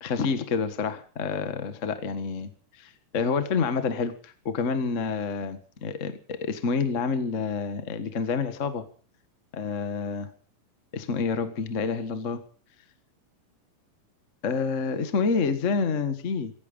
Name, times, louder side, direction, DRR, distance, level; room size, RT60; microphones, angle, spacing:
voice 1, 0.0-8.8 9.5-10.3 10.9-12.4 14.4-16.5, left 5 dB, 35° left, 10 dB, 1.2 m, -28 dB
16.0 x 16.0 x 5.4 m, 0.42 s
omnidirectional pair, 3.7 m